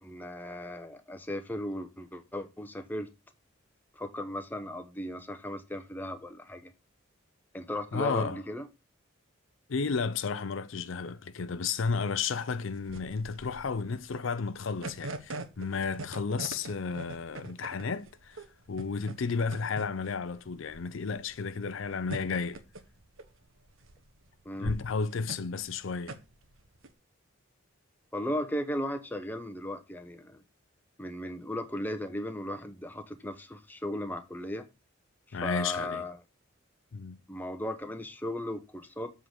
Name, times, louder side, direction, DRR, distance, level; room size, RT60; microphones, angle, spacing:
voice 1, 0.0-3.1 4.0-6.7 7.5-8.7 24.4-24.8 28.1-30.4 31.0-34.6 35.3-36.2 37.3-39.1, left 1 dB, 10° left, 0.8 m, -36 dB
voice 2, 7.9-8.4 9.7-22.6 24.6-26.2 35.3-36.0 36.9-37.2, left 5 dB, 70° left, 0.5 m, -33 dB
sound 1, 12.1-26.9, right 2 dB, 75° right, 1.1 m, -43 dB
7.7 x 3.8 x 6.4 m
head